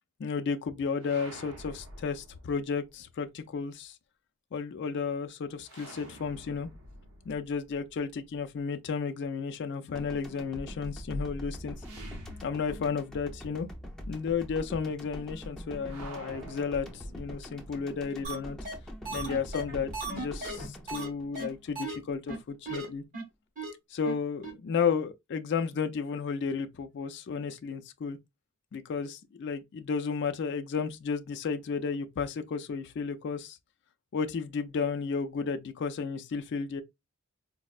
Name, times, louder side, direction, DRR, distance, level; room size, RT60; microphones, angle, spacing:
voice 1, 0.2-4.0 4.5-6.7 7.3-11.8 12.4-13.7 14.1-18.6 19.1-23.0 23.9-28.2 28.7-33.6 34.1-36.8, left 5 dB, 50° left, 0.3 m, -33 dB
sound 1, 1.0-3.0 5.6-8.6 11.8-13.2 13.5-13.6 15.8-17.6, right 1 dB, 80° right, 0.8 m, -49 dB
sound 2, 10.0-22.2, equal, 5° left, 0.6 m, -43 dB
sound 3, 18.2-18.3 18.6-18.7 19.0-21.1 21.3-21.5 21.8-22.0 22.3-22.4 22.7-22.8 23.1-23.2 23.6-23.7 24.0-24.1 24.4-24.5, right 3 dB, 40° right, 1.5 m, -36 dB
4.1 x 2.0 x 2.4 m
head